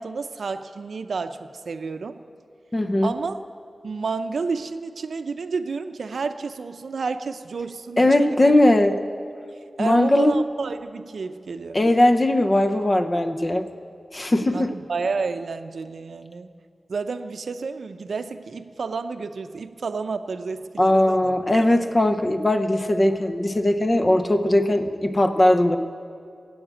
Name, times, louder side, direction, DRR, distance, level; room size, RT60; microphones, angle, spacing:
voice 1, 0.0-2.2 3.0-3.4 3.8-8.5 9.8-11.8 14.5-16.5 16.9-21.6, right 4 dB, 85° right, 10 dB, 0.6 m, -30 dB
voice 2, 2.7-3.1 8.0-8.9 9.8-10.4 11.7-13.7 14.1-14.7 20.8-25.8, left 1 dB, 30° left, 6 dB, 0.7 m, -19 dB
16.0 x 8.0 x 8.8 m, 2.4 s
wide cardioid pair, 115°, 0 cm